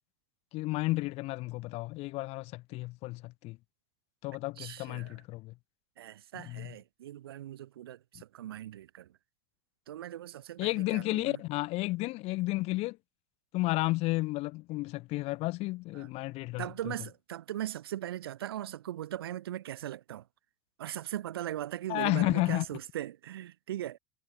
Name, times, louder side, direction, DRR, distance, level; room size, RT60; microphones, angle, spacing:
voice 1, 0.5-3.6 4.2-5.5 6.3-6.7 10.6-13.0 13.5-16.9 21.9-22.6, left 21 dB, 60° left, 6.3 m, -32 dB
voice 2, 4.6-5.1 6.0-9.1 9.9-11.4 16.0-16.1 16.6-20.2 20.8-24.0, right 12 dB, 85° right, 3.3 m, -39 dB
hypercardioid pair, 95°, 12 cm